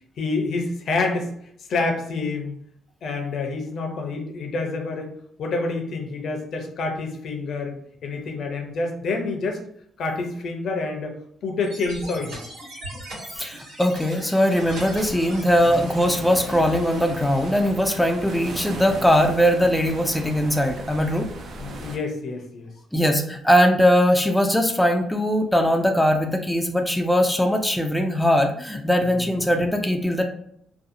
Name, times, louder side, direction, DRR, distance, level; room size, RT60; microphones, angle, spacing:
voice 1, 0.2-1.3 1.7-2.6 3.0-5.1 5.4-9.6 10.0-12.4 15.7-15.8 21.6-22.7, left 3 dB, 65° left, 3 dB, 0.5 m, -28 dB
sound 1, 11.6-17.6, right 1 dB, 90° right, 1.5 m, -40 dB
voice 2, 13.4-21.3 22.9-30.2, equal, 5° left, 3 dB, 0.3 m, -20 dB
sound 2, 14.5-22.0, right 2 dB, 65° right, 0.4 m, -37 dB
2.7 x 2.3 x 2.5 m, 0.69 s
cardioid pair, 90°, 0 cm